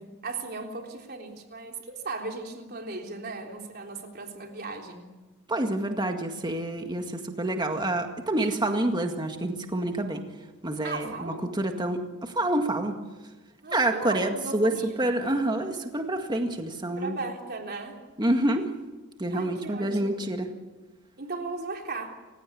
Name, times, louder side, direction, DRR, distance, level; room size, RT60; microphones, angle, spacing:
voice 1, 0.0-5.1 10.8-11.4 13.6-15.0 17.0-18.0 19.3-20.2 21.2-22.2, right 3 dB, 45° right, 2 dB, 3.7 m, -37 dB
voice 2, 5.5-10.2 10.6-12.9 13.7-17.1 18.2-18.7 19.2-20.5, right 1 dB, 20° right, 4 dB, 1.9 m, -27 dB
29.5 x 16.5 x 8.6 m, 1.2 s
head